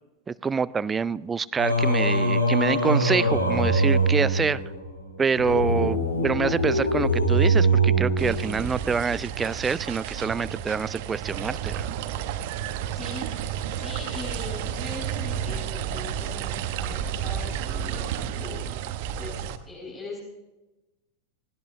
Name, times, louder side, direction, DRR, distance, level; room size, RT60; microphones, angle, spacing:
voice 1, 0.3-4.6 5.2-11.9, right 5 dB, 15° right, 19 dB, 0.4 m, -26 dB
Singing, 1.6-8.9, right 2 dB, 75° left, 2.1 m, -23 dB
sound 1, 8.2-19.6, right 9 dB, 50° right, 0.9 m, -31 dB
voice 2, 12.9-20.2, left 2 dB, 10° left, -7 dB, 6.4 m, -40 dB
19.5 x 16.5 x 3.2 m, 1.0 s
figure-of-eight pair, 90°, 0 cm